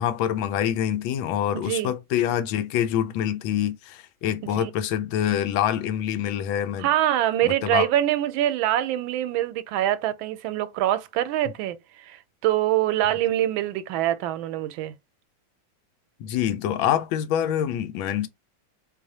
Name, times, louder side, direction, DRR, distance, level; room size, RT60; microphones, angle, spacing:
voice 1, 0.0-6.9 7.4-7.9 16.2-18.3, left 10 dB, 85° left, 1.3 m, -26 dB
voice 2, 1.5-1.9 4.4-4.7 6.8-14.9, right 13 dB, 90° right, 1.3 m, -25 dB
4.0 x 3.0 x 2.7 m
omnidirectional pair, 2.1 m